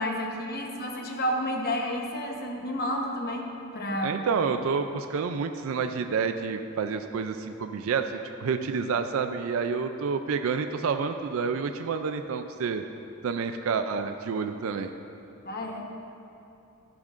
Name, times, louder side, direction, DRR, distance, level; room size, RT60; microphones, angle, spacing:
voice 1, 0.0-3.5 3.7-4.2 15.4-15.8, equal, 45° left, 1 dB, 1.0 m, -30 dB
voice 2, 4.0-12.8 13.2-14.9, right 5 dB, 65° right, 8 dB, 0.4 m, -29 dB
12.5 x 10.5 x 2.5 m, 2.9 s
head